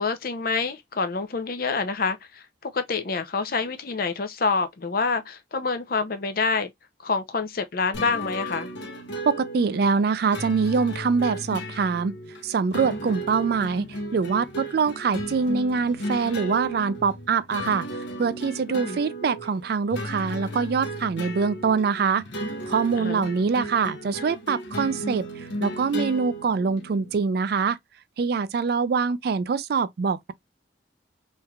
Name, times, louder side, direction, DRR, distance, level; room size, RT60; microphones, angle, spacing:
voice 1, 0.0-6.7 7.0-8.7 18.7-19.0 22.9-23.2, left 4 dB, 50° left, 0.6 m, -27 dB
sound 1, 7.9-27.1, equal, 65° left, 0.9 m, -35 dB
voice 2, 9.3-12.2 12.4-17.9 18.2-22.2 22.7-27.8 28.2-30.3, right 5 dB, 50° right, 0.3 m, -24 dB
3.3 x 3.2 x 2.3 m
head